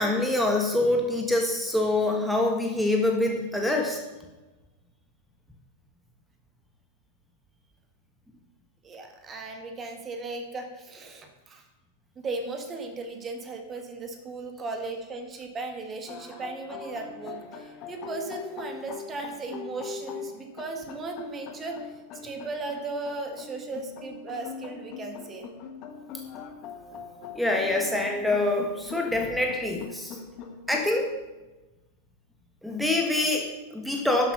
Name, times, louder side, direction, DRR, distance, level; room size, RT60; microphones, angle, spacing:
voice 1, 0.0-4.0 27.3-30.2 30.7-31.1 32.6-34.3, left 2 dB, ahead, 2 dB, 1.5 m, -25 dB
voice 2, 8.8-11.6 12.2-25.5, right 3 dB, 25° right, 5 dB, 1.7 m, -36 dB
sound 1, 16.1-31.0, left 6 dB, 40° left, 1.6 m, -42 dB
12.0 x 7.8 x 5.5 m, 1.1 s
figure-of-eight pair, 90°, 0 cm